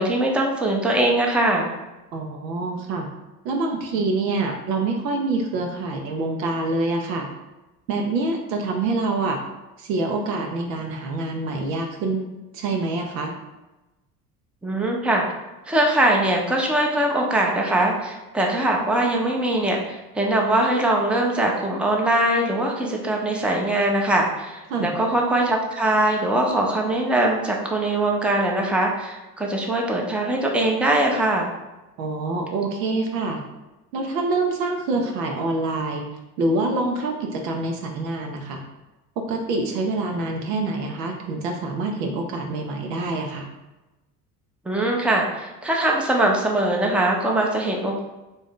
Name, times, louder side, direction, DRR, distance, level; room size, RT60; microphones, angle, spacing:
voice 1, 0.0-1.7 14.6-15.2 15.7-31.5 44.7-48.0, right 1 dB, ahead, 0 dB, 0.6 m, -22 dB
voice 2, 2.1-3.1 3.4-7.3 7.9-9.4 9.8-12.3 12.5-13.3 24.7-24.9 32.0-33.4 33.9-36.0 36.4-38.6 39.2-43.5, right 2 dB, 80° right, 2 dB, 0.6 m, -26 dB
3.4 x 2.6 x 3.6 m, 1.0 s
hypercardioid pair, 65°, 48 cm